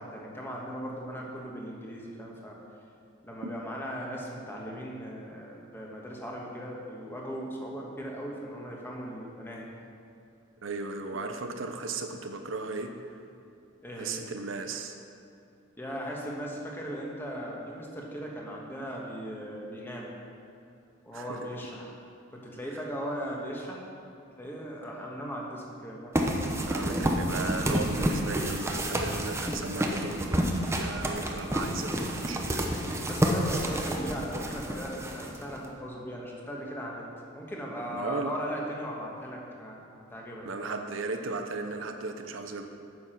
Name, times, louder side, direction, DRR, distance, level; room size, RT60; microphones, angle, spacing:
voice 1, 0.0-2.6 3.2-9.7 13.8-14.2 15.8-20.1 21.0-21.9 22.3-23.8 24.4-26.2 33.1-37.1 37.3-39.8 40.1-40.6, equal, 10° left, -2 dB, 1.4 m, -38 dB
voice 2, 10.6-13.1 14.0-14.9 21.1-21.5 26.7-32.7 37.9-38.3 40.4-42.6, right 3 dB, 70° right, 5 dB, 0.7 m, -36 dB
sound 1, 26.1-35.7, equal, 15° right, 0.7 m, -29 dB
9.5 x 7.2 x 5.8 m, 2.5 s
head